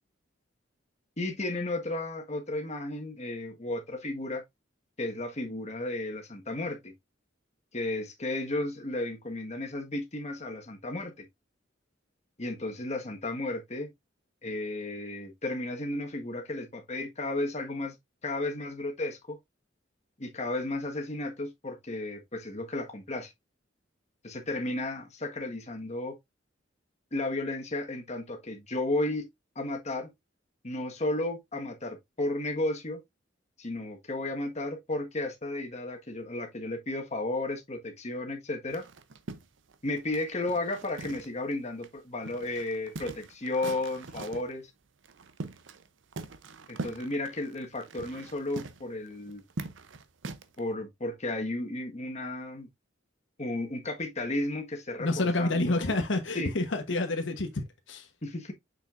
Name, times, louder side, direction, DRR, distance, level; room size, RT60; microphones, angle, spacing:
voice 1, 1.2-4.4 5.0-6.9 7.7-11.2 12.4-13.9 14.4-17.9 18.2-19.4 20.2-23.3 24.2-26.2 27.1-29.3 29.5-30.1 30.6-33.0 33.6-38.8 39.8-44.7 46.7-49.4 50.6-52.7 53.4-55.9 56.3-56.5 58.2-58.5, left 2 dB, 35° left, 1.5 m, -33 dB
sound 1, 38.7-41.5 41.8-41.9 42.3-44.5 45.0-45.9 46.1-50.6, right 3 dB, 75° right, 0.7 m, -42 dB
voice 2, 55.0-58.1, left 2 dB, 75° left, 1.1 m, -29 dB
6.8 x 6.0 x 2.5 m
head